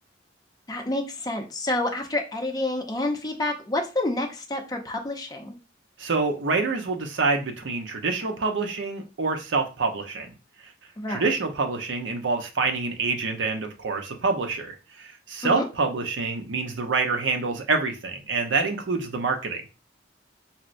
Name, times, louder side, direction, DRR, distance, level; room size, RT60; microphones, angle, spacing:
voice 1, 0.7-5.6 11.0-11.3 15.4-15.7, left 2 dB, 20° left, 2 dB, 0.6 m, -28 dB
voice 2, 6.0-10.3 11.1-19.6, right 4 dB, 85° right, 4 dB, 0.7 m, -26 dB
4.2 x 2.0 x 2.5 m, 0.30 s
head